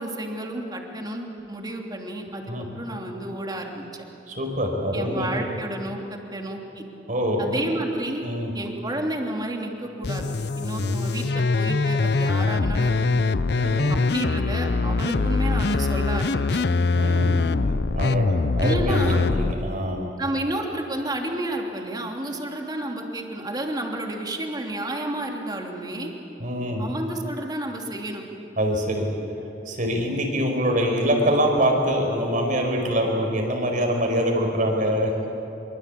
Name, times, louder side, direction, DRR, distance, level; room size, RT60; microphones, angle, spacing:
voice 1, 0.0-4.0 4.9-6.8 7.4-8.3 8.5-10.3 10.6-12.9 14.1-16.6 18.6-19.2 20.2-26.1 26.8-28.2, right 1 dB, 25° right, 1 dB, 3.1 m, -31 dB
voice 2, 4.3-5.3 7.1-7.6 8.2-8.5 10.8-10.9 13.5-14.0 16.9-17.4 17.6-20.1 26.4-26.9 28.6-29.1 29.7-35.1, equal, 50° right, 2 dB, 5.3 m, -24 dB
sound 1, 10.0-19.5, left 3 dB, 65° left, 0.6 m, -23 dB
25.5 x 24.5 x 8.5 m, 2.9 s
head